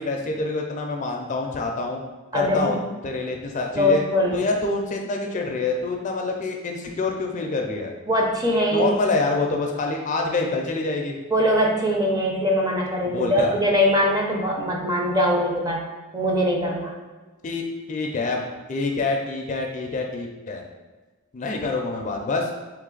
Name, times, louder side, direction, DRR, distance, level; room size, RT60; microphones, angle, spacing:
voice 1, 0.0-2.0 2.3-2.8 3.0-4.0 4.3-7.9 8.7-11.2 13.1-13.6 17.4-18.4 18.7-20.6 21.3-22.5, left 3 dB, 35° left, 2 dB, 0.4 m, -26 dB
voice 2, 2.3-2.7 3.7-4.4 8.1-8.9 11.3-15.8 16.1-16.9, equal, 20° right, -1 dB, 0.6 m, -22 dB
3.3 x 3.2 x 3.8 m, 1.3 s
head